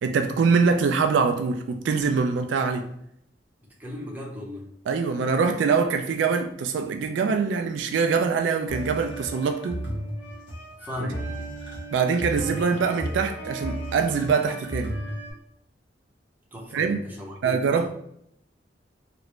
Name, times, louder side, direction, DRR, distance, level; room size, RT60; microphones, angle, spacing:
voice 1, 0.0-2.9 4.9-9.8 11.9-15.0 16.7-17.0 17.4-17.9, right 5 dB, 75° right, 0.3 m, -24 dB
voice 2, 3.8-4.8 10.8-11.3 16.5-17.9, left 1 dB, 10° right, 0.7 m, -36 dB
sound 1, 8.7-15.3, right 1 dB, 80° left, 1.1 m, -34 dB
3.0 x 2.5 x 2.9 m
head